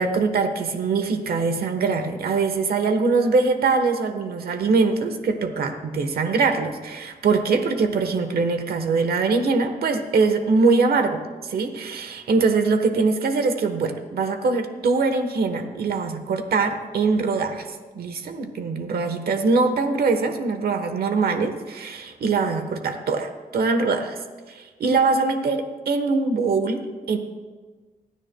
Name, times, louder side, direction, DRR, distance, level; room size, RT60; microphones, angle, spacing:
voice 1, 0.0-17.7 17.9-24.2 24.5-27.2, right 4 dB, 85° right, 7 dB, 1.1 m, -22 dB
29.0 x 9.8 x 2.2 m, 1.3 s
cardioid pair, 55°, 16 cm